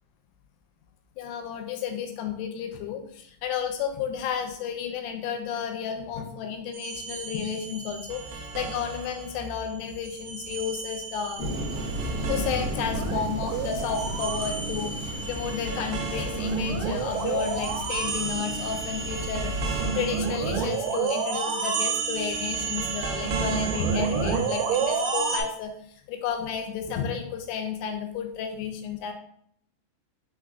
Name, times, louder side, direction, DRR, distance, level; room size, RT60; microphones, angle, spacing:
voice 1, 1.2-11.4 12.3-29.1, left 7 dB, 80° left, 5 dB, 2.1 m, -32 dB
sound 1, 6.7-9.5 9.8-25.4, right 5 dB, 85° right, 2.5 m, -30 dB
Thunder, 11.4-19.9, equal, 50° right, 1.7 m, -34 dB
5.6 x 3.5 x 2.4 m, 0.67 s
omnidirectional pair, 4.5 m